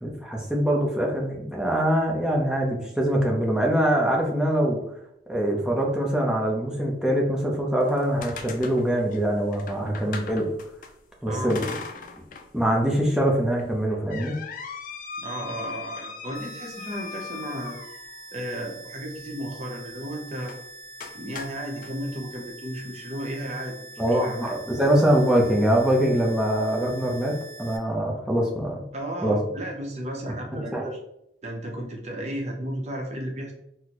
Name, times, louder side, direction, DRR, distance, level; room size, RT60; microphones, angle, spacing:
voice 1, 0.0-4.8 5.3-10.5 11.2-11.6 12.5-14.4 24.0-28.8 29.2-29.4 30.7-30.9, right 1 dB, 5° right, -2 dB, 0.6 m, -23 dB
sound 1, 7.8-10.9 11.5-12.5 12.9-13.0 13.6-18.3 20.4-20.6 21.0-21.9, left 5 dB, 50° left, 0.4 m, -39 dB
voice 2, 11.3-11.7 15.2-17.8 18.3-20.5 21.1-24.5 28.9-31.0 31.4-33.5, right 1 dB, 40° right, 1 dB, 0.7 m, -34 dB
sound 2, 16.3-27.8, right 1 dB, 75° right, 0.5 m, -44 dB
4.1 x 2.1 x 2.9 m, 0.79 s
head